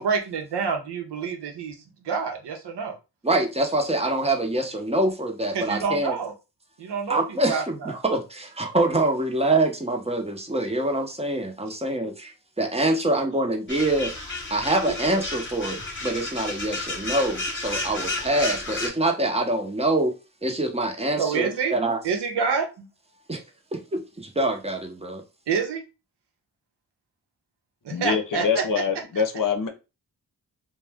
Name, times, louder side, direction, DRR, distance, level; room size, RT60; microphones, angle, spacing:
voice 1, 0.0-2.9 5.5-6.3 6.8-7.9 14.8-15.0 21.2-21.8 22.0-22.9 25.5-25.8 27.8-28.8, right 5 dB, 80° right, 0.8 m, -27 dB
voice 2, 3.2-6.2 7.1-14.1 14.5-20.1 20.4-22.0 23.3-23.4 23.7-25.2, right 2 dB, 15° right, 0.7 m, -25 dB
sound 1, 13.7-18.9, left 2 dB, 30° left, 1.0 m, -32 dB
voice 3, 27.9-29.7, left 6 dB, 50° left, 0.7 m, -25 dB
2.5 x 2.2 x 3.3 m
cardioid pair, 55°, 40 cm